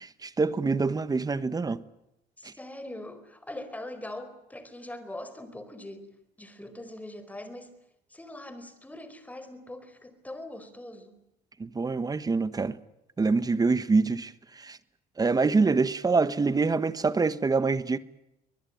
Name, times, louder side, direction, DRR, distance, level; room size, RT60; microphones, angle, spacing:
voice 1, 0.0-1.8 2.4-2.5 11.6-12.8 13.2-14.8 15.2-18.0, right 4 dB, 20° right, 1.4 m, -25 dB
voice 2, 2.4-7.8 8.1-11.2, left 1 dB, 10° left, 4.5 m, -42 dB
24.0 x 20.5 x 9.4 m
cardioid pair, 110°, 17 cm